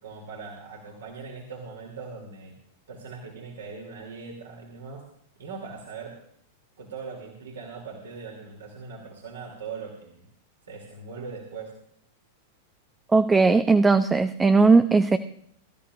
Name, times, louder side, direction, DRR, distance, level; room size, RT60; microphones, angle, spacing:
voice 1, 0.0-2.5 2.9-5.0 5.4-6.2 6.8-10.3 10.7-11.7, right 5 dB, 65° right, -1 dB, 2.9 m, -40 dB
voice 2, 13.1-15.2, right 4 dB, 10° right, 11 dB, 0.6 m, -18 dB
22.0 x 13.5 x 2.5 m, 0.67 s
figure-of-eight pair, 95°, 0 cm